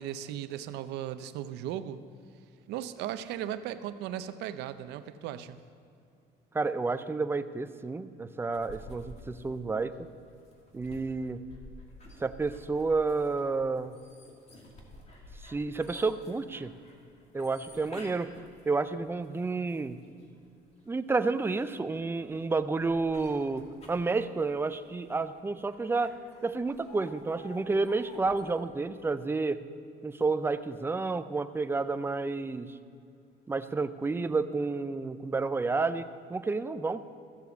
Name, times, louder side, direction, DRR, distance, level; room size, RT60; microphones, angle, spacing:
voice 1, 0.0-2.0 2.7-5.6, right 11 dB, 85° right, 12 dB, 0.6 m, -37 dB
voice 2, 6.5-10.1 10.7-11.4 12.2-14.0 15.4-16.7 17.3-18.3 18.7-20.0 20.9-23.6 23.9-26.2 26.4-29.6 30.0-32.7 33.5-37.0, right 3 dB, 15° right, 11 dB, 0.5 m, -30 dB
sound 1, 8.5-20.3 20.8-28.4, left 1 dB, 40° left, 2.2 m, -51 dB
14.0 x 7.1 x 6.8 m, 2.5 s
cardioid pair, 110°, 17 cm